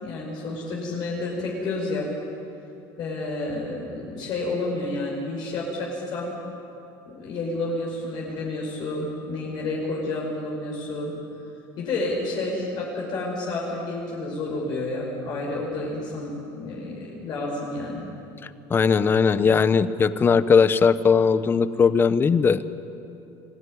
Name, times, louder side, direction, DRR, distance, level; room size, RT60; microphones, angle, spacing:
voice 1, 0.0-2.1 3.0-6.3 7.1-11.1 11.8-18.0, left 2 dB, 50° left, -3 dB, 5.6 m, -30 dB
voice 2, 18.7-22.7, left 5 dB, 25° left, 15 dB, 0.8 m, -19 dB
25.0 x 15.5 x 9.9 m, 2.8 s
cardioid pair, 135°, 9 cm